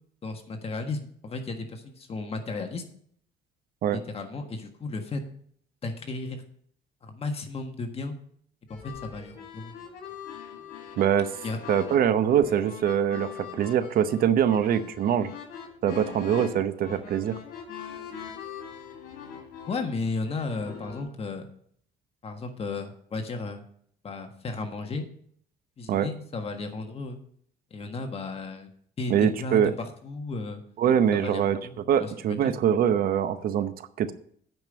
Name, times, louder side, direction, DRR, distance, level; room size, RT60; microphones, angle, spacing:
voice 1, 0.2-2.8 3.9-5.2 5.8-6.4 7.0-8.2 8.7-9.7 11.4-11.6 19.7-21.5 22.2-23.6 24.0-25.1 25.8-27.2 27.7-28.7 29.0-30.6 31.1-32.5, left 3 dB, 35° left, 5 dB, 1.5 m, -34 dB
sound 1, 8.7-21.0, left 7 dB, 70° left, 3.1 m, -42 dB
voice 2, 11.0-11.3 11.7-15.3 15.8-17.4 25.9-26.1 29.1-29.7 30.8-31.6 31.9-34.1, right 9 dB, 60° right, 12 dB, 0.8 m, -23 dB
9.2 x 5.3 x 8.0 m, 0.62 s
cardioid pair, 110°, 17 cm